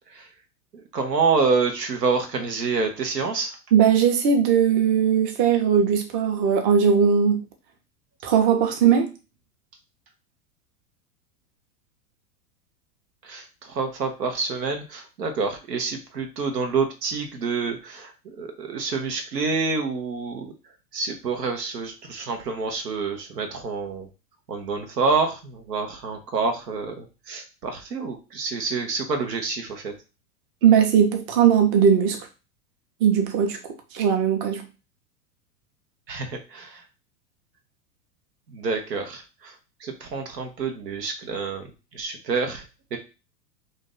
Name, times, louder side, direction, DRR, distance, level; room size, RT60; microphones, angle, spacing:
voice 1, 0.7-3.6 13.2-20.5 20.9-24.1 24.5-29.9 36.1-36.8 38.5-39.5 39.8-41.7 41.9-42.6 42.9-43.0, right 4 dB, 85° right, 0.9 m, -27 dB
voice 2, 3.7-7.4 8.2-9.1 30.6-32.2 33.0-33.6 33.9-34.6, right 7 dB, 40° right, 0.8 m, -19 dB
2.6 x 2.6 x 3.8 m
hypercardioid pair, 100°, 48 cm